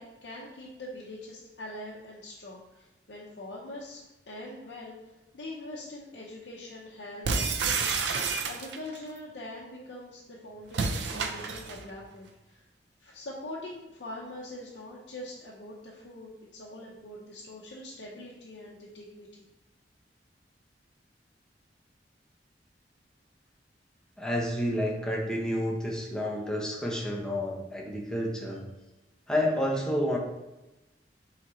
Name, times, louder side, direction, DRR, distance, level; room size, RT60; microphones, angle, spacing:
voice 1, 0.0-4.0 4.3-12.6 13.0-19.4, left 1 dB, 80° left, -4 dB, 0.7 m, -43 dB
sound 1, 7.2-9.0 10.7-11.8, right 4 dB, 75° right, 0.5 m, -29 dB
voice 2, 24.2-28.6 29.3-30.2, equal, 5° left, -3 dB, 0.8 m, -30 dB
3.9 x 3.2 x 4.2 m, 1.0 s
head